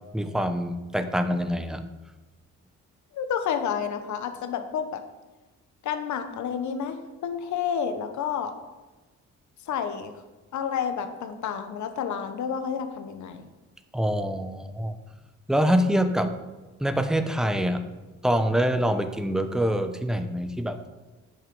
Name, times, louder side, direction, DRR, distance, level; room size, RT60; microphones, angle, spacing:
voice 1, 0.1-1.8 13.9-15.0 15.5-16.3 16.8-17.8 18.2-20.8, equal, ahead, 8 dB, 0.8 m, -25 dB
voice 2, 3.1-5.0 5.8-8.5 9.6-10.1 10.5-13.4, left 7 dB, 70° left, 8 dB, 1.1 m, -30 dB
10.5 x 6.2 x 5.4 m, 1.2 s
cardioid pair, 90°, 30 cm